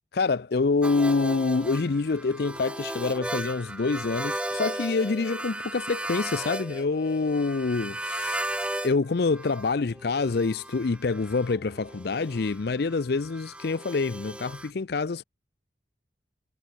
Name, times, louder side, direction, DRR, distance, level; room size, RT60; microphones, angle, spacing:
voice 1, 0.1-8.4 8.8-15.2, left 4 dB, 55° left, 0.5 m, -26 dB
sound 1, 0.8-9.0 9.2-14.7, right 1 dB, 5° right, 1.3 m, -36 dB
head